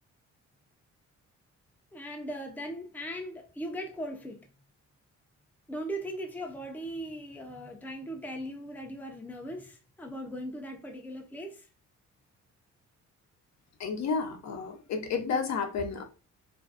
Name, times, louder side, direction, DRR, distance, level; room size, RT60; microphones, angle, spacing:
voice 1, 1.9-4.4 5.7-11.7, equal, 5° left, 0.5 m, -39 dB
voice 2, 13.8-16.0, left 5 dB, 65° left, 0.6 m, -31 dB
2.5 x 2.2 x 2.4 m
cardioid pair, 90°, 30 cm